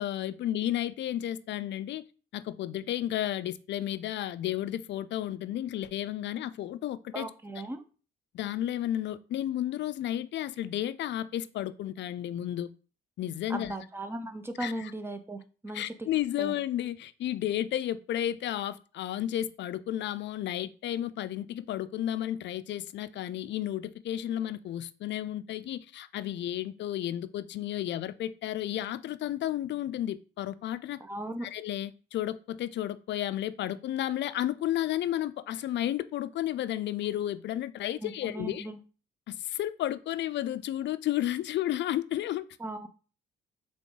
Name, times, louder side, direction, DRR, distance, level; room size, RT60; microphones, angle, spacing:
voice 1, 0.0-2.0 2.3-7.3 8.3-12.7 13.2-13.7 14.6-14.9 15.7-31.0 31.4-38.7 39.3-42.4, left 12 dB, 65° left, 0.4 m, -32 dB
voice 2, 7.1-7.8 13.5-16.1 16.4-16.5 31.0-31.5 38.0-38.8 42.6-42.9, right 1 dB, 10° right, 0.6 m, -37 dB
3.8 x 3.5 x 3.8 m
cardioid pair, 90°, 20 cm